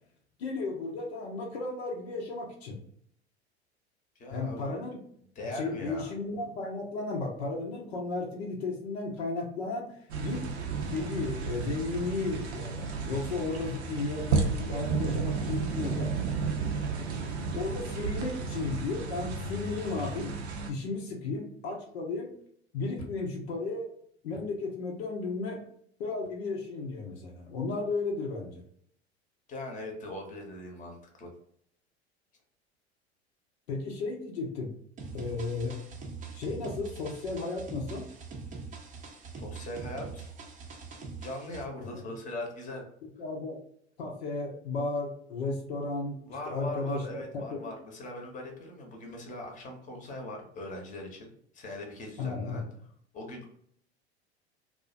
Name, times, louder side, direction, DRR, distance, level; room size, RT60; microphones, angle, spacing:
voice 1, 0.4-2.8 4.3-5.0 5.5-10.5 10.8-16.3 17.5-20.3 20.7-22.4 22.7-23.9 24.2-25.6 26.0-28.6 33.7-34.7 35.1-35.8 36.3-38.0 41.8-42.0 43.0-43.6 44.0-47.3 47.5-47.7 52.2-52.6, left 3 dB, 70° left, 0 dB, 0.7 m, -34 dB
voice 2, 4.2-4.7 5.4-6.1 29.5-31.3 39.4-40.3 41.2-42.9 46.3-51.3 51.5-52.6 53.1-53.4, left 1 dB, 25° left, 2 dB, 0.8 m, -40 dB
sound 1, 10.1-20.7, right 4 dB, 75° right, 0.5 m, -33 dB
sound 2, 35.0-41.6, right 4 dB, 25° right, 0.5 m, -43 dB
2.4 x 2.1 x 2.4 m, 0.66 s
figure-of-eight pair, 75°, 33 cm